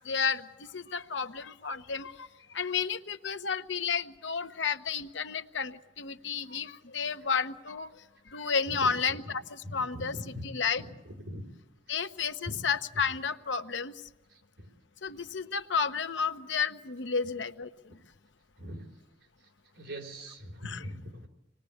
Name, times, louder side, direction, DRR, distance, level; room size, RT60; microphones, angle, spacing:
voice 1, 0.0-2.3 2.5-7.9 8.3-10.1 10.4-10.8 11.9-13.9 15.0-17.7 20.6-20.8, left 6 dB, 75° left, 9 dB, 1.0 m, -32 dB
voice 2, 8.7-9.2 9.6-10.4 10.8-11.5 12.4-12.6 14.6-14.7 18.6-18.9 19.7-21.3, equal, 75° right, 2 dB, 4.0 m, -41 dB
26.0 x 20.0 x 8.6 m, 1.0 s
head